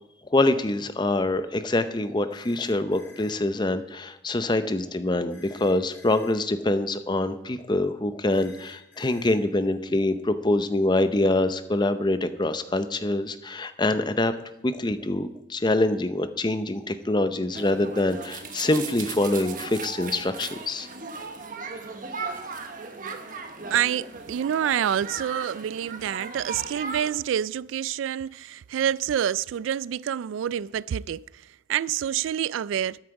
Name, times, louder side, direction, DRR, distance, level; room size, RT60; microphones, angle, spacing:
voice 1, 0.3-14.4 14.6-20.9, left 2 dB, 25° left, 0.6 m, -25 dB
sound 1, 2.3-3.3 5.3-6.3 8.3-9.3, left 3 dB, 75° left, 4.0 m, -52 dB
sound 2, 17.5-27.1, right 4 dB, 45° right, 1.2 m, -37 dB
voice 2, 23.7-31.2 31.7-33.0, right 9 dB, 85° right, 0.3 m, -27 dB
13.0 x 9.7 x 4.8 m
head